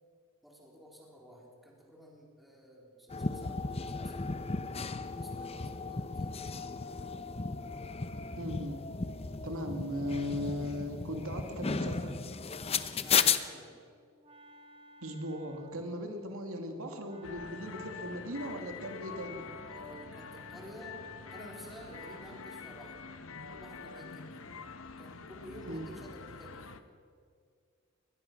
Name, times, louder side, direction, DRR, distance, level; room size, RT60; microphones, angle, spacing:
voice 1, 0.4-4.4 5.2-6.6 13.0-13.8 19.7-23.0 23.5-24.4 25.0-26.7, equal, ahead, -2 dB, 3.8 m, -51 dB
sound 1, 3.1-13.4, left 5 dB, 30° left, 0.8 m, -34 dB
voice 2, 8.4-8.8 9.4-12.2 15.0-19.4 25.7-25.9, equal, 80° right, 4 dB, 2.5 m, -38 dB
Wind instrument woodwind instrument, 13.7-22.8, right 3 dB, 25° right, 1.2 m, -57 dB
sound 2, 17.2-26.8, left 5 dB, 70° left, 1.1 m, -46 dB
23.5 x 19.5 x 6.2 m, 2.1 s
head